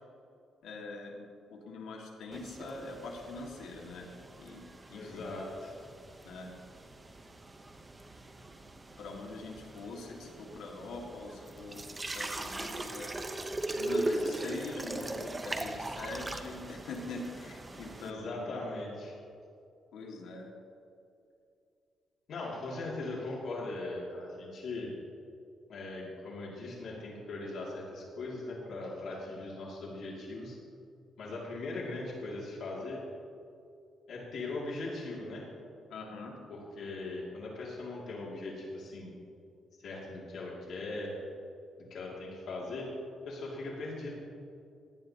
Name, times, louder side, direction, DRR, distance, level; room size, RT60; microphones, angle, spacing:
voice 1, 0.6-4.1 4.4-4.6 4.9-5.2 6.2-6.5 9.0-13.1 13.7-18.6 19.9-20.5 35.9-36.4, left 3 dB, 85° left, -1 dB, 1.9 m, -43 dB
sound 1, 2.3-18.1, right 2 dB, 15° right, 0.8 m, -40 dB
voice 2, 4.9-5.7 18.0-19.2 22.3-24.9 25.7-30.6 31.2-33.0 34.1-35.5 36.5-39.1 39.8-41.1 41.9-42.9 43.2-44.1, left 2 dB, 60° left, -4 dB, 2.4 m, -39 dB
17.5 x 11.5 x 2.9 m, 2.5 s
cardioid pair, 135°, 0 cm